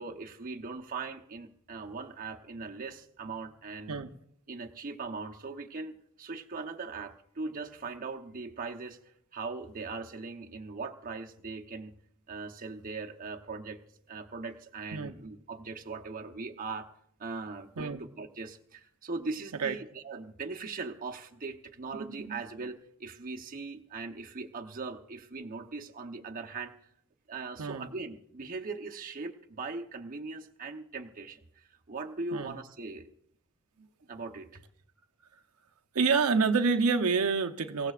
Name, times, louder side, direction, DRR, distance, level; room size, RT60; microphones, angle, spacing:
voice 1, 0.0-4.0 4.5-9.0 9.3-11.9 12.3-13.8 14.1-16.9 17.2-26.7 27.3-33.1 34.1-34.6, right 4 dB, 40° right, 2 dB, 0.9 m, -40 dB
voice 2, 22.0-22.4 27.6-27.9 32.3-32.5 35.9-37.9, right 4 dB, 85° right, 5 dB, 0.8 m, -28 dB
24.5 x 16.0 x 2.5 m, 0.70 s
head